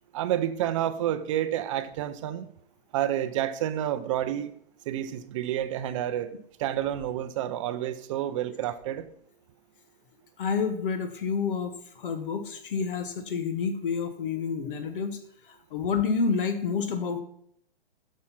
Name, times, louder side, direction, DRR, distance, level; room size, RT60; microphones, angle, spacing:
voice 1, 0.1-2.5 2.9-4.5 4.9-6.3 6.6-9.0, right 11 dB, 30° right, 0.6 m, -29 dB
voice 2, 10.4-15.2 15.5-17.2, left 5 dB, 60° left, 1.2 m, -29 dB
8.5 x 6.4 x 5.6 m
hypercardioid pair, 145°, 30 cm